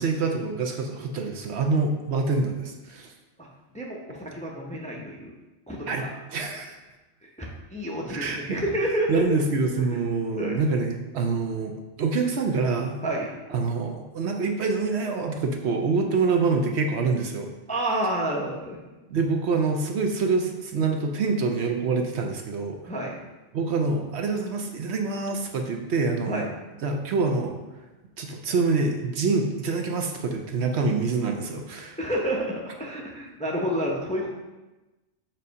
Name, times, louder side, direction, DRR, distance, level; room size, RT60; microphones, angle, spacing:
voice 1, 0.0-3.1 5.9-6.8 8.1-8.6 9.1-13.0 13.5-17.5 19.1-22.8 23.5-26.5 26.8-27.6 28.2-32.0, right 4 dB, 65° right, 3 dB, 0.9 m, -26 dB
voice 2, 3.7-5.3 5.7-6.1 7.2-9.4 9.8-9.9 10.4-10.6 13.0-13.3 17.7-18.8 22.9-23.2 26.3-26.4 32.0-34.3, equal, 10° left, -2 dB, 0.6 m, -29 dB
7.3 x 2.7 x 5.2 m, 1.1 s
omnidirectional pair, 1.3 m